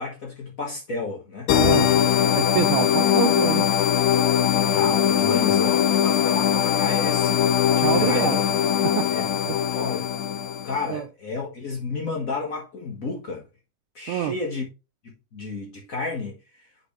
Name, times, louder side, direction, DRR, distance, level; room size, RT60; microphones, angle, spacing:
voice 1, 0.0-1.5 3.0-3.1 4.7-7.4 7.9-8.4 9.1-9.3 9.7-10.1 10.6-13.4 13.9-14.7 15.0-16.4, left 3 dB, 50° left, 1.0 m, -31 dB
sound 1, 1.5-10.8, left 9 dB, 75° left, 1.9 m, -21 dB
voice 2, 1.6-2.0 2.3-3.7 7.8-8.4 8.8-9.1 9.5-9.6 10.9-11.1 14.1-14.4, right 10 dB, 80° right, 2.0 m, -26 dB
7.0 x 5.3 x 3.1 m
omnidirectional pair, 3.7 m